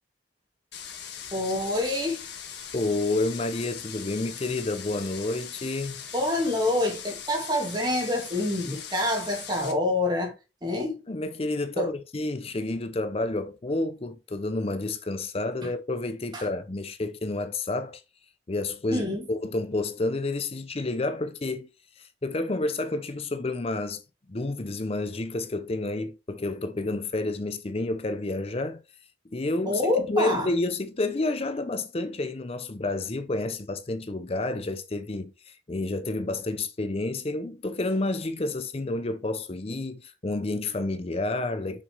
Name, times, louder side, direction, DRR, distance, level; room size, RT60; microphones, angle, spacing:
sound 1, 0.7-9.7, left 8 dB, 60° left, 1.9 m, -40 dB
voice 1, 1.3-2.2 6.1-10.3 10.6-11.0 11.8-11.9 16.3-16.4 18.9-19.2 29.7-30.5, left 1 dB, 25° right, 2.4 m, -26 dB
voice 2, 2.7-6.0 11.1-18.0 18.5-21.7 22.0-24.0 24.3-28.8 29.3-41.8, left 2 dB, 30° left, 0.5 m, -30 dB
6.5 x 6.1 x 3.3 m
head